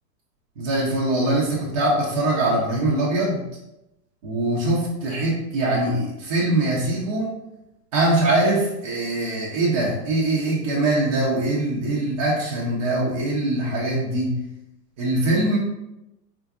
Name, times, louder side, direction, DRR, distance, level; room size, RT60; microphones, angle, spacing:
voice 1, 0.6-3.4 4.2-7.3 7.9-14.4 15.0-15.6, right 1 dB, 25° right, -5 dB, 0.4 m, -22 dB
3.7 x 2.3 x 2.4 m, 0.91 s
hypercardioid pair, 110°, 49 cm